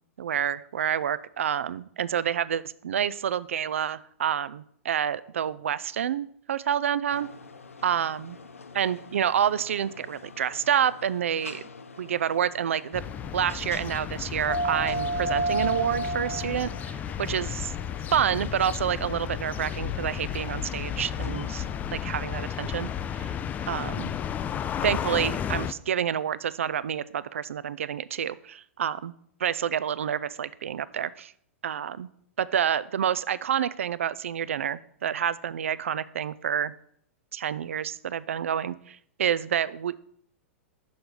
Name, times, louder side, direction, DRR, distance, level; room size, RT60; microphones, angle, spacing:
voice 1, 0.2-7.3 7.8-8.4 8.7-11.7 12.0-13.0 13.3-17.7 18.1-21.6 21.9-22.9 23.1-23.4 23.7-24.1 24.8-29.1 29.4-31.3 31.6-32.1 32.4-36.7 37.3-40.0, right 9 dB, 70° right, 18 dB, 0.4 m, -28 dB
sound 1, 7.1-22.0, right 2 dB, 80° left, 0.6 m, -37 dB
sound 2, 12.9-25.7, left 9 dB, 20° left, 0.3 m, -33 dB
6.4 x 4.5 x 5.2 m, 0.65 s
figure-of-eight pair, 100°, 7 cm